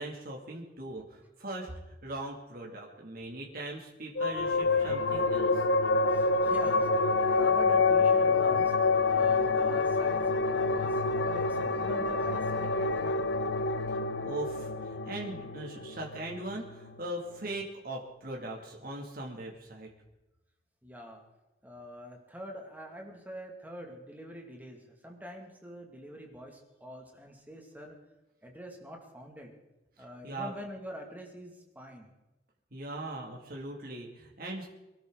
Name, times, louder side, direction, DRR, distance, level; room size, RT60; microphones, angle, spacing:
voice 1, 0.0-5.6 14.2-19.9 30.2-30.5 32.7-34.7, right 2 dB, 55° right, -1 dB, 2.8 m, -40 dB
sound 1, 4.2-17.0, left 3 dB, 75° left, 0.8 m, -27 dB
voice 2, 6.1-8.8 9.1-13.3 20.8-21.2 21.6-28.0 28.4-29.6 30.0-32.1, equal, 10° right, 1 dB, 2.4 m, -45 dB
24.5 x 13.0 x 4.0 m, 1.0 s
head